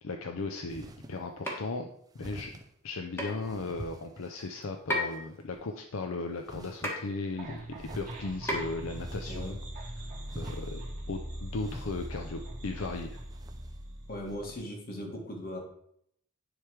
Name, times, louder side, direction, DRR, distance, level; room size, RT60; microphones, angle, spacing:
voice 1, 0.0-1.9 2.1-2.5 2.8-9.6 9.8-10.8 11.1-13.2, left 3 dB, 70° left, 4 dB, 0.6 m, -37 dB
sound 1, 0.7-1.2 2.2-2.7 3.4-4.6 5.1-5.6 6.4-7.0 7.8-9.8 10.3-10.8 11.5-12.3 12.8-13.8 14.2-14.4, right 1 dB, 20° right, 0.5 m, -47 dB
sound 2, 1.4-1.7 3.2-3.4 4.9-5.3 6.8-7.1 8.5-8.8, left 1 dB, 10° left, 1.6 m, -31 dB
sound 3, 7.4-14.5, right 1 dB, 40° right, 2.4 m, -41 dB
voice 2, 14.1-15.6, equal, 45° left, 1 dB, 1.5 m, -38 dB
9.9 x 3.4 x 4.7 m, 0.72 s
head